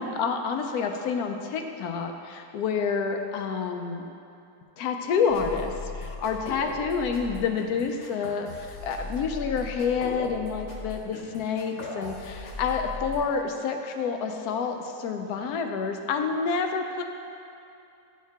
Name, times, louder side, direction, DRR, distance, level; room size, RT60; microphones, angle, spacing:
voice 1, 0.0-4.0 4.8-17.0, left 5 dB, 85° left, 4 dB, 1.1 m, -28 dB
sound 1, 5.3-13.2, left 3 dB, 55° left, 1.2 m, -38 dB
10.0 x 4.6 x 3.5 m, 2.7 s
omnidirectional pair, 1.6 m